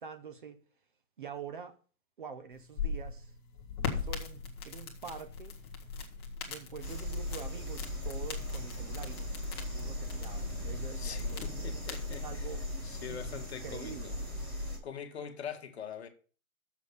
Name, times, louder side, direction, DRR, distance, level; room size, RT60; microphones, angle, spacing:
voice 1, 0.0-0.6 1.2-1.8 2.2-3.3 3.8-5.6 6.5-9.3 9.6-12.7 13.1-14.2, right 6 dB, 35° right, 0.9 m, -46 dB
sound 1, 2.5-13.1, left 5 dB, 20° left, 1.1 m, -41 dB
sound 2, 6.8-14.8, left 1 dB, 15° right, 2.1 m, -38 dB
voice 2, 10.9-12.5 12.8-14.1 14.8-16.1, left 7 dB, 45° left, 1.4 m, -43 dB
7.2 x 6.3 x 6.7 m
hypercardioid pair, 165°, 43 cm